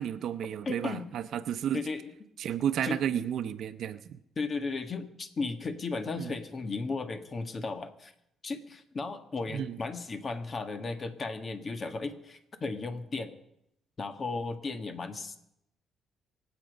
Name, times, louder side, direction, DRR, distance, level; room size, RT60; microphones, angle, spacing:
voice 1, 0.0-1.8 2.4-4.2 6.2-6.3 9.5-9.8, right 9 dB, 70° right, 12 dB, 0.8 m, -32 dB
voice 2, 0.6-1.1 1.7-2.1 2.8-3.0 4.3-8.1 8.4-13.3 14.0-15.4, left 3 dB, 40° left, 8 dB, 1.7 m, -35 dB
25.5 x 8.5 x 5.2 m, 0.78 s
cardioid pair, 90°, 0 cm